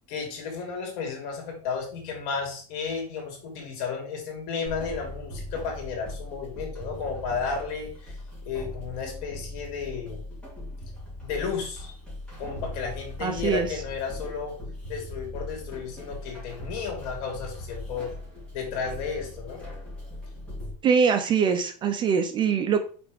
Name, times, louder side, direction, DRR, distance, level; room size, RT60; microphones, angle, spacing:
voice 1, 0.1-10.2 11.2-11.9 12.4-14.6 14.9-18.1 18.5-19.6, left 5 dB, 55° left, 2 dB, 3.1 m, -33 dB
sound 1, 4.7-20.7, left 1 dB, 5° left, 2.8 m, -39 dB
voice 2, 13.2-13.7 20.8-22.8, right 6 dB, 20° right, 7 dB, 0.5 m, -23 dB
6.0 x 4.3 x 5.1 m, 0.41 s
supercardioid pair, 165°, 21 cm